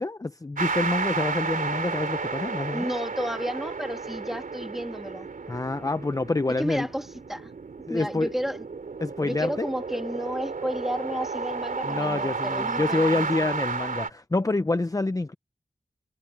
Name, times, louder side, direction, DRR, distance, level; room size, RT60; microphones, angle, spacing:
voice 1, 0.0-2.9 5.5-6.9 7.9-8.3 9.0-9.7 11.8-15.3, left 2 dB, 25° left, 0.7 m, -27 dB
sound 1, 0.6-14.1, right 4 dB, 75° right, 3.5 m, -32 dB
voice 2, 2.7-5.3 6.6-7.5 7.9-8.6 9.2-13.3, equal, ahead, 1.6 m, -32 dB
wide cardioid pair, 75°, 14 cm